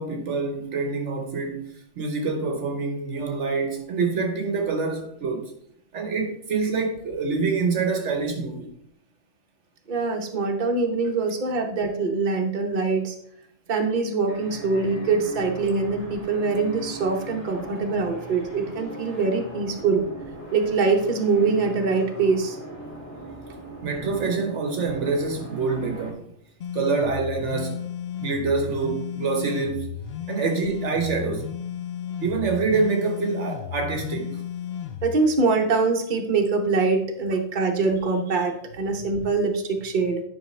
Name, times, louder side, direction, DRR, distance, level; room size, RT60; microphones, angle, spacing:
voice 1, 0.0-5.5 5.9-8.7 23.8-26.3 26.7-27.9 28.2-29.9 30.3-31.5 32.2-34.4 38.9-39.0, right 4 dB, 65° right, 1.2 m, -26 dB
voice 2, 9.9-13.1 13.7-20.0 20.5-22.6 35.0-40.2, right 4 dB, 40° right, 1.0 m, -23 dB
sound 1, 14.3-26.1, right 1 dB, 10° left, 2.1 m, -39 dB
sound 2, 26.6-35.2, left 9 dB, 60° left, 0.7 m, -34 dB
9.9 x 5.6 x 3.2 m
omnidirectional pair, 1.4 m